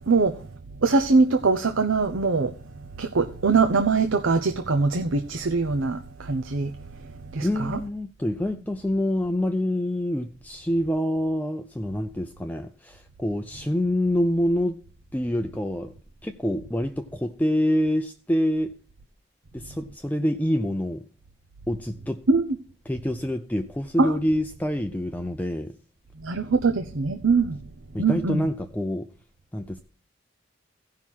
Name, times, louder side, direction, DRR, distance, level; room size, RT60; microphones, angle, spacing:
voice 1, 0.1-0.4 0.8-2.5 3.0-6.7 7.3-7.8 22.3-22.5 24.0-24.1 26.2-27.6 28.0-28.4, right 4 dB, 80° right, 0.8 m, -22 dB
voice 2, 7.4-14.8 15.1-15.9 16.2-18.7 19.5-21.0 21.7-22.2 22.9-25.7 27.9-29.1 29.5-29.8, equal, 10° left, 0.4 m, -26 dB
15.5 x 5.8 x 4.5 m
head